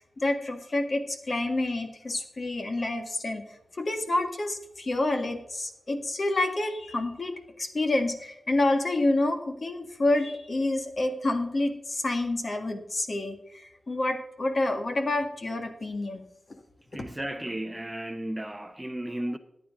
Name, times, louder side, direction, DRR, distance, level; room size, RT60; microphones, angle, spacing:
voice 1, 0.2-3.4 3.8-16.3, left 2 dB, 45° left, 1.8 m, -28 dB
voice 2, 16.9-19.4, right 1 dB, 15° right, 0.8 m, -34 dB
14.0 x 9.8 x 3.7 m
wide cardioid pair, 95°, 0 cm